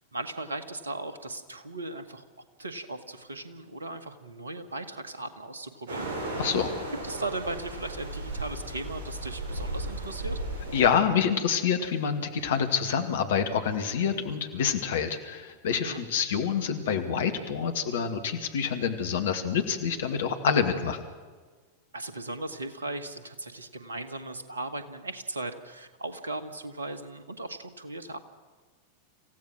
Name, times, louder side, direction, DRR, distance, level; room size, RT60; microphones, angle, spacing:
voice 1, 0.1-2.2 2.6-6.1 7.0-10.4 15.7-16.0 21.9-28.2, right 2 dB, 75° right, 10 dB, 1.7 m, -37 dB
sound 1, 5.9-10.9, right 2 dB, 55° right, 7.9 m, -35 dB
voice 2, 6.4-6.7 10.7-21.0, left 7 dB, 60° left, 7 dB, 2.3 m, -27 dB
27.5 x 15.5 x 6.3 m, 1.4 s
figure-of-eight pair, 90°, 0 cm